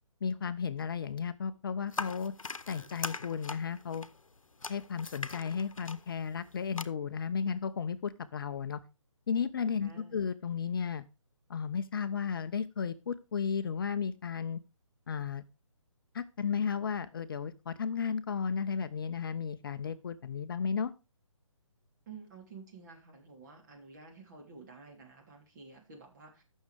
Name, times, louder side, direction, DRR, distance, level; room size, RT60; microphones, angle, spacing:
voice 1, 0.2-2.3 2.7-4.1 4.7-8.8 9.3-11.1 11.5-14.6 15.1-15.4 16.1-20.9, left 6 dB, 45° left, 12 dB, 0.6 m, -34 dB
sound 1, 1.9-6.8, left 4 dB, 85° left, 0.8 m, -41 dB
voice 2, 9.8-10.2 22.1-26.4, right 4 dB, 35° right, 1 dB, 3.2 m, -51 dB
15.5 x 6.4 x 3.4 m, 0.28 s
figure-of-eight pair, 145°, 17 cm